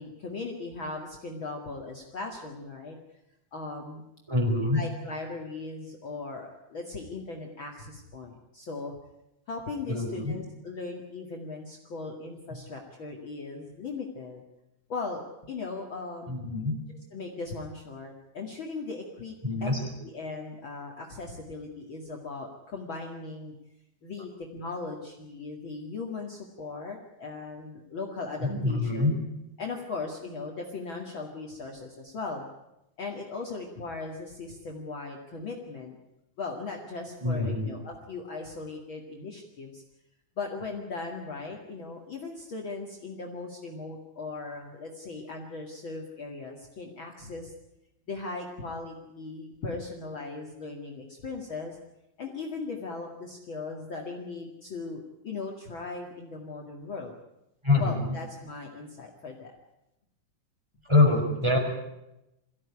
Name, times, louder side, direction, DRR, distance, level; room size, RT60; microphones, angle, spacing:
voice 1, 0.0-3.0 3.5-4.0 4.7-9.0 9.5-14.4 14.9-16.5 17.1-19.4 19.6-23.5 24.0-29.2 29.6-32.5 33.0-36.0 36.4-39.8 40.4-47.5 48.1-51.8 52.2-57.1 57.8-59.5, left 3 dB, 45° left, 0 dB, 2.6 m, -38 dB
voice 2, 4.3-4.8 9.9-10.3 16.3-16.8 19.4-19.8 28.4-29.1 37.2-37.7 57.6-58.2 60.9-61.6, left 2 dB, 10° right, 0 dB, 4.8 m, -25 dB
23.5 x 15.5 x 9.8 m, 0.90 s
omnidirectional pair, 3.5 m